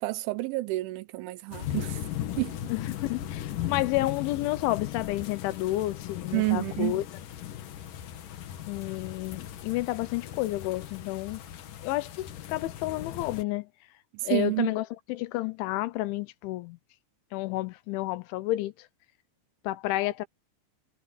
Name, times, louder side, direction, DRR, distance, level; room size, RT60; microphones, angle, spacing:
voice 1, 0.0-2.0 2.4-2.6 6.3-7.0 14.3-14.7, right 23 dB, 85° right, 3.2 m, -29 dB
sound 1, 1.5-13.4, left 11 dB, 60° left, 2.4 m, -38 dB
voice 2, 2.7-7.0 8.6-11.4 11.8-13.7 14.2-16.8 17.3-18.7 19.6-20.3, left 17 dB, 80° left, 3.2 m, -30 dB
omnidirectional pair, 5.4 m